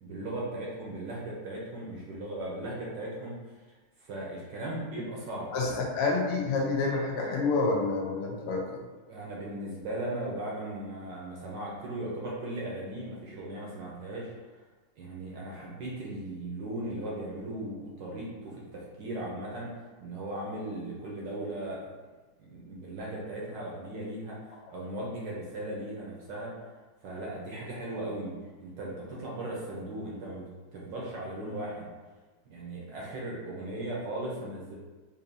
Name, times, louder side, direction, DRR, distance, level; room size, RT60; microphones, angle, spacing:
voice 1, 0.0-3.4 4.0-5.5 9.1-14.3 15.0-19.7 20.0-21.8 22.4-26.5 27.0-28.3 28.6-30.4 30.7-31.9 32.5-34.7, right 1 dB, 65° right, -4 dB, 1.3 m, -37 dB
voice 2, 5.5-8.6, left 3 dB, 85° left, -1 dB, 1.6 m, -28 dB
4.7 x 2.7 x 2.6 m, 1.3 s
omnidirectional pair, 2.4 m